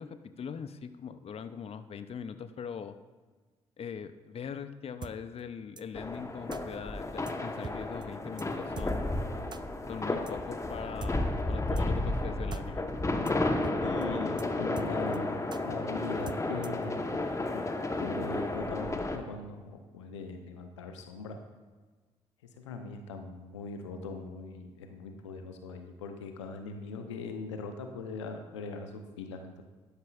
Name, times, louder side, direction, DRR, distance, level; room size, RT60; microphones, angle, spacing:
voice 1, 0.0-2.9 3.8-9.2 9.9-12.9, left 7 dB, 40° left, 11 dB, 0.6 m, -41 dB
sound 1, 5.0-5.1 5.8-5.9 6.5-6.6 7.3-7.4 7.6-7.8 8.0-8.1 8.4-8.5 8.8-8.9 9.5-9.6 10.3-10.4 11.0-11.1 11.8-11.9 12.1-12.2 12.5-12.6 12.9-13.0 13.3-13.4 13.6-13.8 14.0-14.1 14.4-14.5 14.8-15.2 15.5-15.6 16.3-16.8, right 5 dB, 30° right, 0.5 m, -42 dB
sound 2, 6.0-19.2, left 2 dB, 20° left, 1.1 m, -32 dB
voice 2, 13.8-17.1 17.5-17.7 18.0-21.4 22.6-29.6, left 4 dB, 85° left, 6 dB, 0.7 m, -41 dB
11.5 x 11.0 x 2.4 m, 1.3 s
figure-of-eight pair, 40°, 15 cm